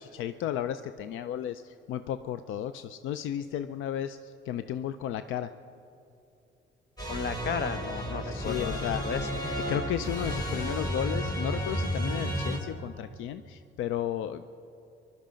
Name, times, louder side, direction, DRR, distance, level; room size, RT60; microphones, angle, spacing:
voice 1, 0.0-5.5 8.2-9.2 9.5-14.5, left 10 dB, 85° left, 12 dB, 0.5 m, -34 dB
sound 1, 7.0-12.6, equal, 20° left, 3.5 m, -32 dB
voice 2, 7.1-9.3, left 6 dB, 60° left, 12 dB, 0.9 m, -34 dB
20.5 x 12.0 x 5.1 m, 2.8 s
cardioid pair, 90°, 20 cm